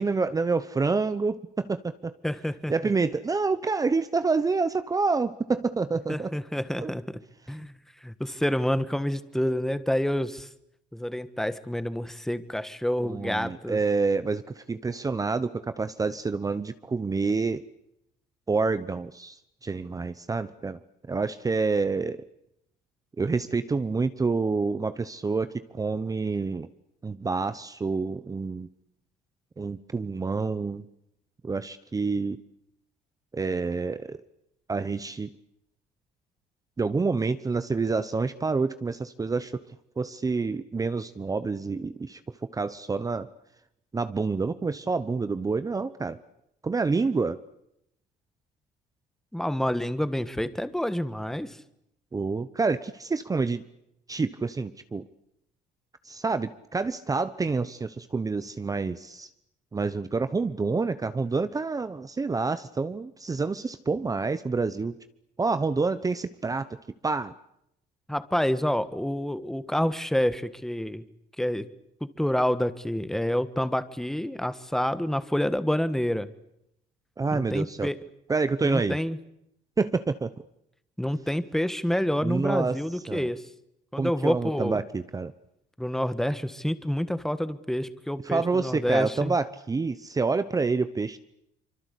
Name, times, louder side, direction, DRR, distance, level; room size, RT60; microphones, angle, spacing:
voice 1, 0.0-2.2 2.7-6.3 6.8-6.9 13.0-17.6 18.5-20.8 21.1-22.2 23.2-26.7 27.0-28.7 29.6-30.8 31.4-32.4 33.3-34.2 34.7-35.3 36.8-39.6 40.0-42.2 42.5-43.3 43.9-46.2 46.6-47.4 52.1-53.6 54.1-55.0 56.0-59.3 59.7-65.0 65.4-66.7 67.0-67.3 77.2-77.9 78.3-79.0 79.8-80.3 82.2-82.8 83.1-83.3 84.0-85.3 88.2-91.2, right 4 dB, 20° right, 12 dB, 1.0 m, -28 dB
voice 2, 2.2-2.7 6.1-7.0 7.5-10.5 10.9-13.8 49.3-51.6 68.1-71.0 71.4-71.7 72.0-76.3 77.3-78.0 78.6-79.2 81.0-83.4 83.9-84.8 85.8-89.3, equal, ahead, 12 dB, 1.6 m, -28 dB
25.5 x 24.5 x 8.4 m, 0.79 s
cardioid pair, 110°, 17 cm